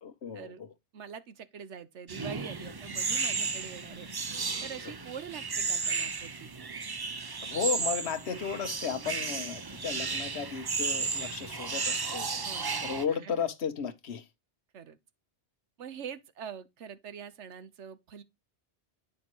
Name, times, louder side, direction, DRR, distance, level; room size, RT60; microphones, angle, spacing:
voice 1, 0.0-0.5 7.4-12.3 12.8-14.3, left 7 dB, 70° left, 1.2 m, -34 dB
voice 2, 0.9-4.1 4.6-6.5 12.4-13.5 14.7-15.0 15.8-18.2, right 7 dB, 80° right, 1.2 m, -44 dB
sound 1, 2.1-13.0, right 4 dB, 35° right, 0.4 m, -34 dB
8.8 x 5.6 x 2.9 m
omnidirectional pair, 1.2 m